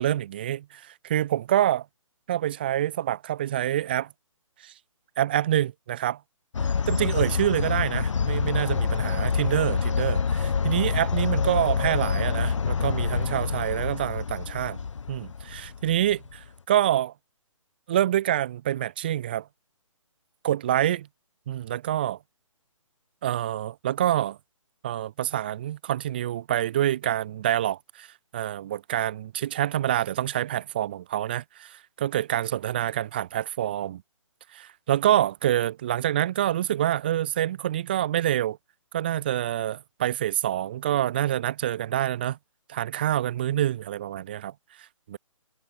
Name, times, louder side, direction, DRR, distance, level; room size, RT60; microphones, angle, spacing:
voice 1, 0.0-1.9 2.3-4.1 4.6-4.7 5.2-6.2 6.9-14.8 15.1-17.1 17.9-19.5 20.4-21.1 21.5-22.2 23.2-24.4 24.8-28.1 28.3-34.0 34.5-38.6 38.9-42.4 42.7-45.2, right 12 dB, 20° right, 0.3 m, -26 dB
sound 1, 6.5-16.4, left 5 dB, 65° left, 0.7 m, -27 dB
figure-of-eight pair, 140°, 17 cm